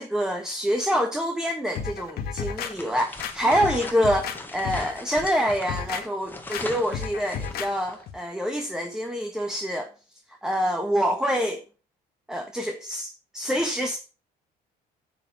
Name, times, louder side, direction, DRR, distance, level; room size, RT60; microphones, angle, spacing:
voice 1, 0.0-9.9 10.4-11.6 12.3-14.0, equal, 5° right, 1.4 m, -26 dB
sound 1, 1.8-2.7 3.2-4.4 4.6-5.0 5.5-6.0 6.5-6.6 6.9-7.7 8.1-8.2, left 7 dB, 65° left, 1.7 m, -32 dB
sound 2, 2.6-8.0, left 2 dB, 10° left, 1.8 m, -40 dB
7.7 x 7.1 x 6.8 m
cardioid pair, 110°, 17 cm